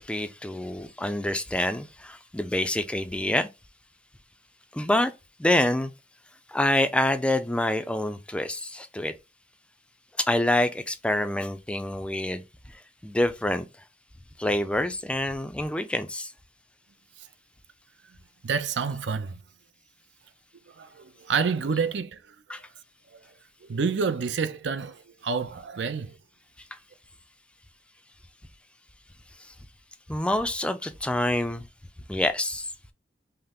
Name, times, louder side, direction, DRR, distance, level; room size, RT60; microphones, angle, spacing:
voice 1, 0.0-3.5 4.7-5.1 5.4-5.9 6.5-9.1 10.3-12.4 13.0-13.7 14.4-16.3 22.5-22.6 30.1-31.7 32.1-32.7, left 1 dB, 5° left, 0.4 m, -26 dB
voice 2, 18.4-19.4 20.8-20.9 21.3-22.2 23.7-25.0 25.2-26.1, right 5 dB, 80° right, 0.5 m, -27 dB
5.6 x 2.0 x 3.6 m
head